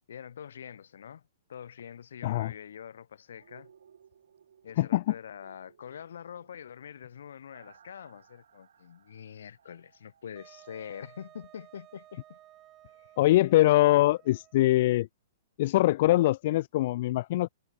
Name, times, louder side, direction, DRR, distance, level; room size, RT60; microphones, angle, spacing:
voice 1, 0.1-3.7 4.6-12.4 12.9-13.1, left 8 dB, 70° left, 7.0 m, -45 dB
sound 1, 3.4-11.3 11.6-11.7, right 8 dB, 80° right, 7.0 m, -61 dB
Wind instrument woodwind instrument, 10.4-14.7, right 14 dB, 15° right, 1.1 m, -56 dB
voice 2, 13.2-15.1 15.6-17.5, left 16 dB, 35° left, 0.4 m, -23 dB
hypercardioid pair, 180°, 0 cm